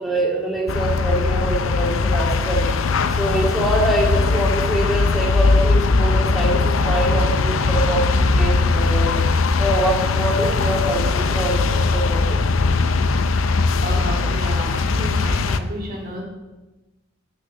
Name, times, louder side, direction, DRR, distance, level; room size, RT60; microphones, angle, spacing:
voice 1, 0.0-2.6 3.2-9.1 9.6-12.4, right 1 dB, ahead, -3 dB, 2.1 m, -24 dB
sound 1, 0.7-15.6, left 3 dB, 70° left, 0.6 m, -19 dB
voice 2, 13.8-16.2, right 1 dB, 45° right, -3 dB, 3.1 m, -31 dB
8.1 x 6.4 x 8.1 m, 1.1 s
head